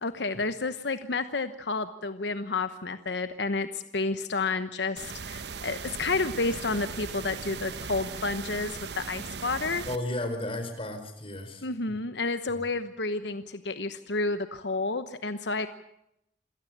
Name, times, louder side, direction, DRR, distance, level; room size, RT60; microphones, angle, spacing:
voice 1, 0.0-9.9 11.6-15.7, left 3 dB, 80° left, 10 dB, 1.1 m, -30 dB
sound 1, 5.0-10.0, right 5 dB, 70° right, 1.1 m, -38 dB
voice 2, 9.9-11.9 12.5-12.6, left 1 dB, 35° left, 7 dB, 4.4 m, -34 dB
27.5 x 17.0 x 7.4 m, 0.79 s
head